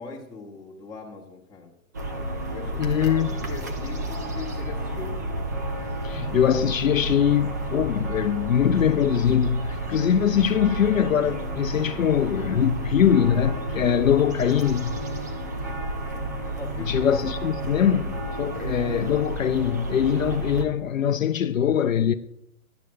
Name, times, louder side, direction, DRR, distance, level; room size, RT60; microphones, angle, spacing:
voice 1, 0.0-1.7 2.5-3.2 3.5-5.2 16.5-17.2, left 4 dB, 10° left, 1.8 m, -40 dB
sound 1, 1.9-20.6, right 1 dB, 15° right, 0.4 m, -31 dB
voice 2, 2.8-3.3 6.0-14.9 16.9-22.1, left 9 dB, 70° left, 0.7 m, -22 dB
15.0 x 11.5 x 2.2 m
figure-of-eight pair, 125°, 41 cm